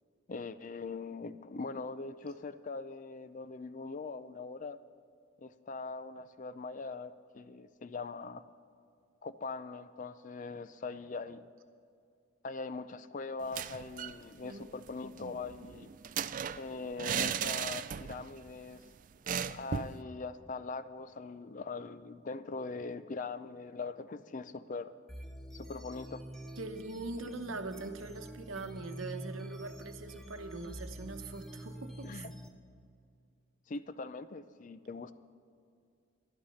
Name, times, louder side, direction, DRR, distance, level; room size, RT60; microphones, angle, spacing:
voice 1, 0.3-4.8 5.4-8.4 9.2-11.5 12.4-15.9 16.5-18.8 19.5-24.9 25.5-26.2 32.0-32.3 33.7-35.1, left 3 dB, 40° left, 13 dB, 0.4 m, -41 dB
sound 1, 13.4-14.2 14.5-14.6 14.9-18.3 18.6-18.7 19.3-20.0, right 8 dB, 40° right, 0.3 m, -36 dB
sound 2, 25.1-32.5, equal, ahead, 0.8 m, -46 dB
voice 2, 26.6-32.2, right 3 dB, 85° right, 7 dB, 1.0 m, -42 dB
12.0 x 11.5 x 5.7 m, 2.4 s
head